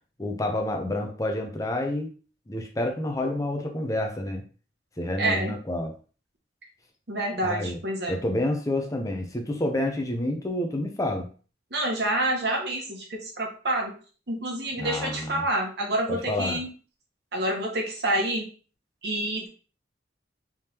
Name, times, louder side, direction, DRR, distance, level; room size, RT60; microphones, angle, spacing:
voice 1, 0.2-2.1 2.5-4.4 5.0-5.9 7.4-7.8 8.1-11.3 14.8-15.4 16.1-16.6, left 1 dB, 20° left, 3 dB, 0.6 m, -29 dB
voice 2, 5.2-5.5 7.1-8.2 11.7-13.9 14.3-16.7 17.3-18.5 19.0-19.5, right 1 dB, 60° right, 0 dB, 1.1 m, -28 dB
3.5 x 3.2 x 2.9 m, 0.38 s
head